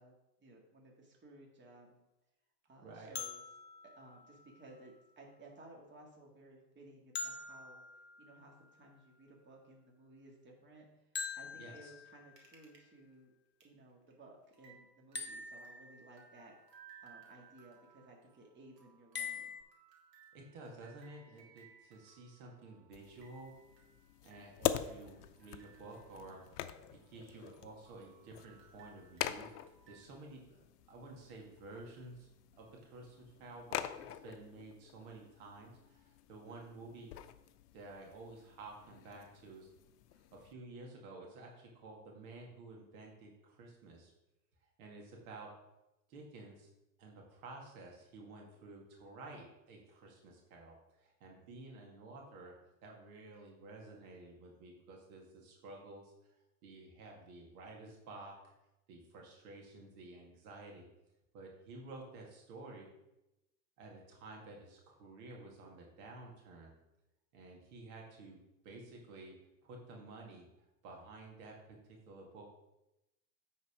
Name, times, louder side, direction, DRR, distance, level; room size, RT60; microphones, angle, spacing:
voice 1, 0.0-2.0 2.7-3.4 3.9-7.8 8.2-13.3 13.6-16.5 17.0-19.6, right 2 dB, 25° right, -1 dB, 2.1 m, -58 dB
voice 2, 2.8-3.1 11.6-11.9 20.3-23.6 24.2-26.5 26.9-37.1 37.7-39.7 40.1-44.1 44.8-45.6 46.1-46.7 47.0-52.6 52.8-56.4 56.6-58.5 58.9-60.9 61.3-62.9 63.8-66.8 67.3-72.5, right 2 dB, 60° right, 0 dB, 2.1 m, -52 dB
sound 1, 3.1-5.1 7.1-8.9 11.1-12.5 15.1-16.4 19.1-19.6, left 5 dB, 20° left, 1.1 m, -45 dB
sound 2, 12.4-12.8 13.1-13.2 13.6-13.7 14.1-14.2 14.5-27.2 27.5-30.1, right 7 dB, 80° right, 1.9 m, -63 dB
sound 3, 22.9-40.5, left 11 dB, 70° left, 0.7 m, -45 dB
9.4 x 4.1 x 5.0 m, 0.91 s
hypercardioid pair, 85°, 48 cm